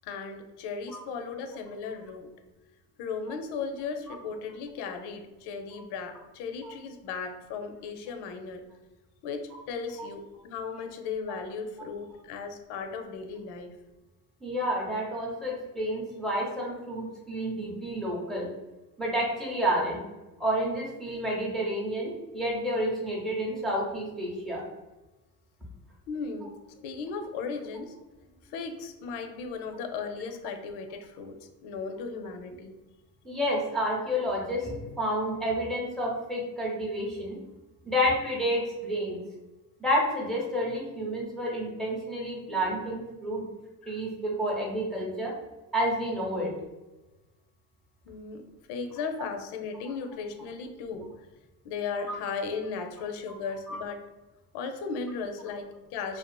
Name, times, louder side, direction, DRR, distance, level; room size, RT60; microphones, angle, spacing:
voice 1, 0.0-2.3 3.0-8.6 9.2-13.7 26.1-26.5 26.8-27.9 28.5-31.4 31.6-32.8 43.8-44.0 48.1-51.1 51.6-54.0 54.5-56.2, left 5 dB, 60° left, 6 dB, 0.5 m, -36 dB
voice 2, 14.4-18.5 19.0-20.0 20.4-24.6 33.2-37.4 37.8-39.2 39.8-43.4 43.9-45.3 45.7-46.5 53.7-53.8, equal, ahead, -3 dB, 0.6 m, -30 dB
2.4 x 2.4 x 2.2 m, 1.1 s
supercardioid pair, 90°, 46 cm